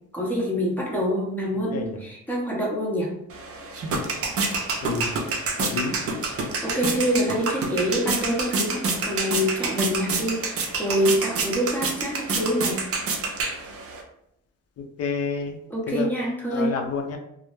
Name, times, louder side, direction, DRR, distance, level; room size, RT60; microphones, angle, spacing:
voice 1, 0.1-3.1 6.6-12.8 15.7-16.7, equal, 5° left, -3 dB, 0.8 m, -26 dB
sound 1, 3.3-14.0, right 3 dB, 50° right, 0.5 m, -28 dB
voice 2, 4.8-5.2 5.7-6.0 15.0-15.6 15.9-16.1 16.5-17.2, left 5 dB, 55° left, 3 dB, 0.5 m, -29 dB
2.1 x 2.0 x 3.0 m, 0.76 s
cardioid pair, 90°, 30 cm